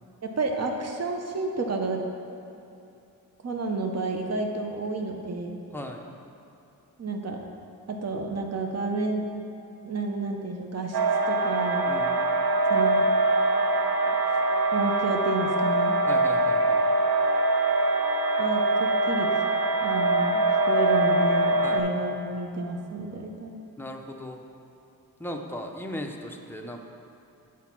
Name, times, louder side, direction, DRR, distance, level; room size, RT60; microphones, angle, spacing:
voice 1, 0.2-2.0 3.4-5.6 7.0-7.4 7.9-9.3 9.8-11.0 11.3-11.9 12.7-13.1 14.7-16.0 18.4-19.3 19.8-23.6, right 3 dB, 45° right, 2 dB, 0.7 m, -30 dB
voice 2, 5.7-6.1 11.9-12.2 16.1-16.8 21.6-21.8 23.8-24.4 25.2-26.8, equal, 5° left, 2 dB, 0.6 m, -37 dB
sound 1, 10.9-21.8, right 2 dB, 85° right, 0.7 m, -23 dB
8.0 x 4.8 x 5.8 m, 2.8 s
wide cardioid pair, 135°, 37 cm